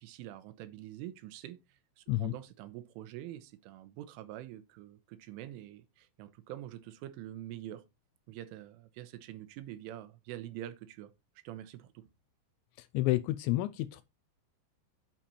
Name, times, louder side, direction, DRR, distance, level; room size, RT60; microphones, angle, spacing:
voice 1, 0.0-7.8 8.3-11.1 11.4-12.1, right 13 dB, 90° right, 3.4 m, -45 dB
voice 2, 12.8-14.0, left 17 dB, 80° left, 2.7 m, -30 dB
9.0 x 5.5 x 4.3 m
omnidirectional pair, 5.6 m